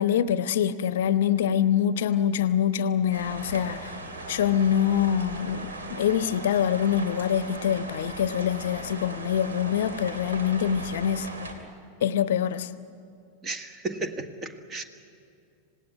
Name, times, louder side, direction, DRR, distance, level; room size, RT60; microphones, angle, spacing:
voice 1, 0.0-3.9 4.3-11.3 12.0-12.7, left 9 dB, 55° left, 14 dB, 0.8 m, -25 dB
sound 1, 3.1-11.5, right 2 dB, 70° right, 3.0 m, -38 dB
voice 2, 13.4-14.8, right 3 dB, 25° right, 7 dB, 1.8 m, -34 dB
26.0 x 18.5 x 9.5 m, 2.5 s
figure-of-eight pair, 90°, 0 cm